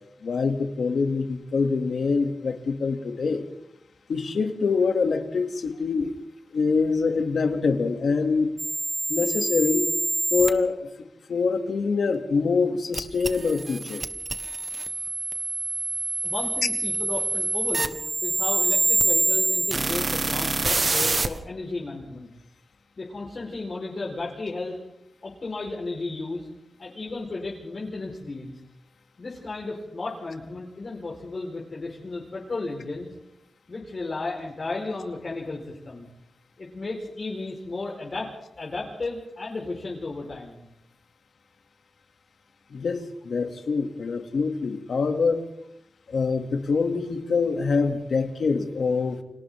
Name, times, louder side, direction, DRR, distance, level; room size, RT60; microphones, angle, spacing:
voice 1, 0.2-3.5 4.1-6.1 6.5-8.5 9.1-9.9 10.3-10.9 11.3-14.0 42.7-45.4 46.1-49.2, left 4 dB, 80° left, 5 dB, 2.5 m, -25 dB
sound 1, 8.6-10.5 12.9-21.3, right 3 dB, 30° right, 1.3 m, -26 dB
voice 2, 16.2-22.3 23.0-24.8 25.2-26.5 26.8-28.5 29.2-33.1 33.7-36.1 36.6-40.6, left 3 dB, 40° left, -3 dB, 4.5 m, -34 dB
30.0 x 26.0 x 3.7 m, 0.80 s
wide cardioid pair, 170°, 0 cm